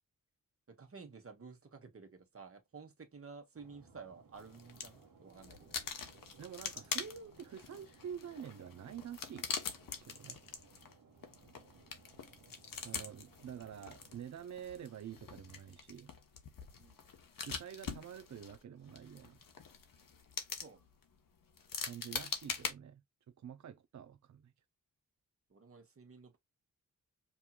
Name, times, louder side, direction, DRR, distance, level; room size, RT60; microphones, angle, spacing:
voice 1, 0.7-5.8 16.8-17.0 20.5-20.9 25.5-26.4, right 5 dB, 45° right, 1.3 m, -53 dB
sound 1, 3.5-14.5, right 4 dB, 85° right, 1.3 m, -63 dB
sound 2, 4.4-5.0 5.3-22.7, left 6 dB, 90° left, 1.0 m, -44 dB
voice 2, 6.4-9.5 10.0-10.4 12.8-16.1 17.4-19.4 21.8-23.0 23.4-24.5, right 8 dB, 60° right, 0.5 m, -48 dB
5.2 x 3.0 x 2.3 m
wide cardioid pair, 95°, 32 cm